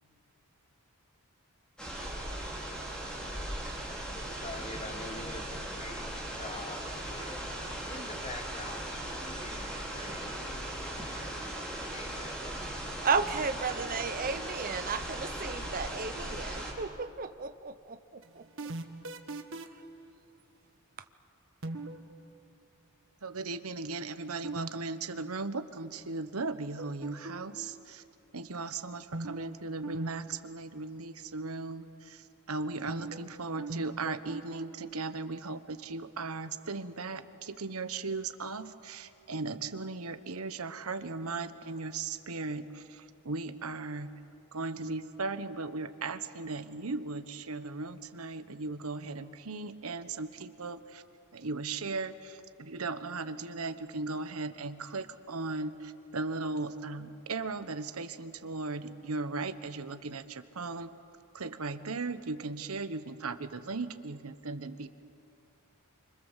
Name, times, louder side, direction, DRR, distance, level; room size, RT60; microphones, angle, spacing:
sound 1, 1.8-16.7, right 1 dB, 5° left, 4.4 m, -38 dB
voice 1, 4.1-7.4 7.9-11.6 11.9-12.3 12.7-13.0, left 2 dB, 30° left, 6 dB, 1.5 m, -46 dB
voice 2, 13.0-18.4, right 5 dB, 40° right, 10 dB, 0.8 m, -33 dB
sound 2, 18.2-19.9 21.6-22.0 24.4-24.7 24.9-25.0 26.8-27.6 29.1-29.5 29.8-30.1 30.3-30.4 32.9-33.3 33.6-34.7, right 2 dB, 60° right, 1.5 m, -38 dB
voice 3, 23.2-28.0 28.3-44.1 44.5-51.0 51.3-60.9 61.3-64.9, right 3 dB, 80° right, 11 dB, 1.2 m, -37 dB
27.5 x 25.0 x 7.4 m, 2.6 s
head